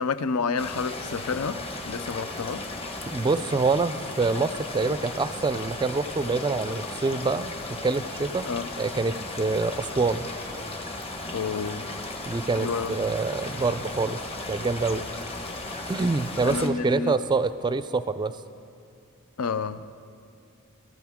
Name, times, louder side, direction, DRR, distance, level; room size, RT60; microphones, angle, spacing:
voice 1, 0.0-2.7 8.5-8.7 11.3-11.9 12.5-13.0 16.4-17.1 19.4-19.8, left 5 dB, 80° left, 0.5 m, -29 dB
sound 1, 0.6-16.7, left 2 dB, 25° left, 1.2 m, -36 dB
voice 2, 3.1-8.5 8.8-10.3 12.3-14.2 14.5-15.0 15.9-18.3, right 3 dB, 20° right, 0.4 m, -26 dB
22.5 x 14.0 x 3.6 m
head